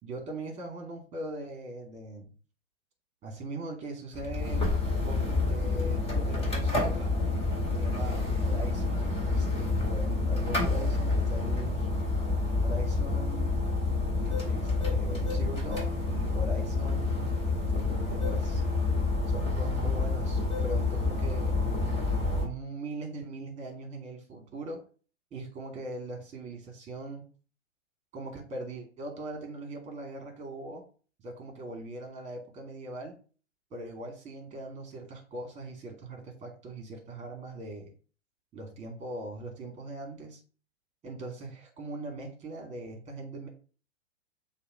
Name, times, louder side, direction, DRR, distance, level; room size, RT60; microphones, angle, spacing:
voice 1, 0.0-2.3 3.2-4.7 5.0-7.1 7.8-11.9 12.6-13.5 14.4-18.6 19.3-21.5 22.4-24.8 25.3-27.3 28.1-30.8 31.2-33.2 33.7-37.9 38.5-40.4 41.0-43.5, right 2 dB, 20° right, 2 dB, 2.6 m, -40 dB
sound 1, 4.1-22.5, left 3 dB, 15° left, 2.9 m, -28 dB
6.7 x 2.9 x 5.5 m, 0.38 s
figure-of-eight pair, 110°, 36 cm